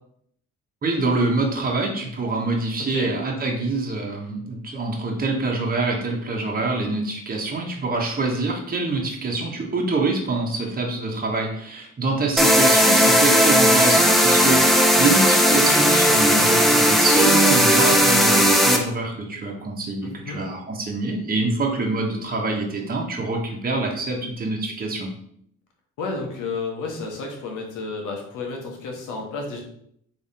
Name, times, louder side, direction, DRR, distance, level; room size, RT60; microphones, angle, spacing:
voice 1, 0.8-25.1, right 3 dB, 30° right, 0 dB, 1.0 m, -25 dB
sound 1, 12.4-18.8, equal, ahead, 0.6 m, -16 dB
voice 2, 20.0-20.4 26.0-29.6, left 3 dB, 85° left, 1 dB, 1.2 m, -31 dB
3.5 x 3.2 x 4.2 m, 0.69 s
cardioid pair, 90°, 30 cm